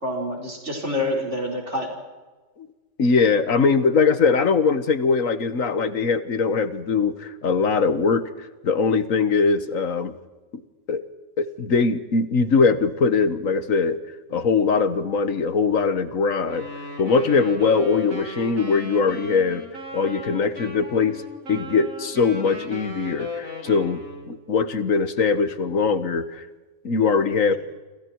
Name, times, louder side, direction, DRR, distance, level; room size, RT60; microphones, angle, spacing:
voice 1, 0.0-1.9, left 1 dB, 60° right, 0 dB, 5.5 m, -27 dB
voice 2, 3.0-10.1 10.9-11.0 11.4-14.0 14.3-16.7 17.0-19.6 19.9-21.2 21.5-24.0 24.3-26.5 26.8-27.5, left 5 dB, 80° left, 12 dB, 1.8 m, -21 dB
Wind instrument woodwind instrument, 16.4-24.4, left 2 dB, 80° right, 4.5 m, -36 dB
29.0 x 27.0 x 4.7 m, 1.3 s
omnidirectional pair, 1.4 m